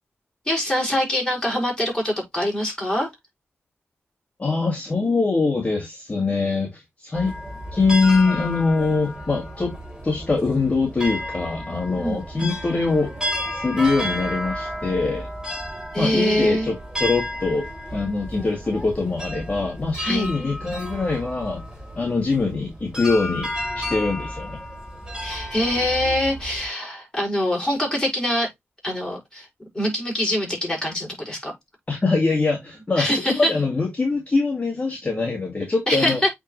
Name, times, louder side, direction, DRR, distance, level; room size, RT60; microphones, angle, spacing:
voice 1, 0.5-3.1 12.0-12.2 15.9-16.7 20.0-20.3 25.2-28.5 28.8-29.5 29.7-31.5 33.0-33.5 35.9-36.3, left 1 dB, 15° left, 5.2 m, -24 dB
voice 2, 4.4-7.4 7.7-9.7 10.0-13.1 13.5-15.3 16.0-17.7 17.9-21.6 22.0-24.6 31.9-36.2, left 3 dB, 30° left, 2.0 m, -23 dB
sound 1, 7.1-26.7, equal, 10° right, 4.0 m, -32 dB
8.5 x 3.9 x 3.1 m
wide cardioid pair, 95°, 5 cm